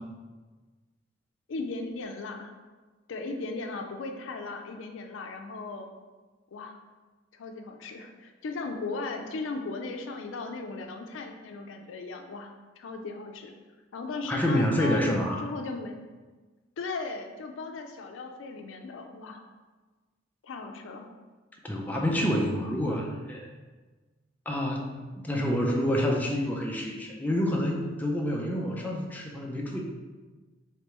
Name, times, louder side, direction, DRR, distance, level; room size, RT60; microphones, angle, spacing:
voice 1, 1.5-2.5 3.1-5.9 6.5-6.8 7.3-13.5 13.9-15.0 15.4-16.0 16.8-19.4 20.4-21.1, left 3 dB, 85° left, 4 dB, 0.4 m, -37 dB
voice 2, 14.3-15.4 21.6-23.5 24.5-29.8, equal, 10° left, -1 dB, 0.4 m, -28 dB
3.6 x 3.2 x 3.0 m, 1.3 s
head